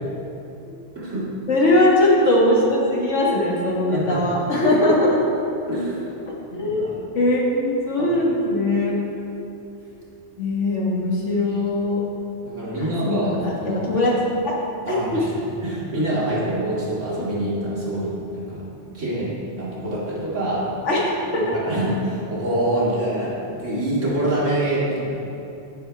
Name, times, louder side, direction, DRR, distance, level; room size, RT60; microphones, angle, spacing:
voice 1, 1.0-1.3 3.9-4.2 5.7-6.0 6.5-6.9 8.0-8.1 12.4-13.8 14.8-18.6 18.9-20.7 21.3-25.3, right 1 dB, 90° right, -8 dB, 2.9 m, -26 dB
voice 2, 1.5-5.2 6.5-6.9 7.1-9.0 10.4-12.0 12.8-14.1 14.4-14.6 14.9-15.2 20.9-21.5, left 1 dB, 75° left, -4 dB, 2.0 m, -20 dB
9.9 x 9.4 x 3.5 m, 2.8 s
omnidirectional pair, 1.2 m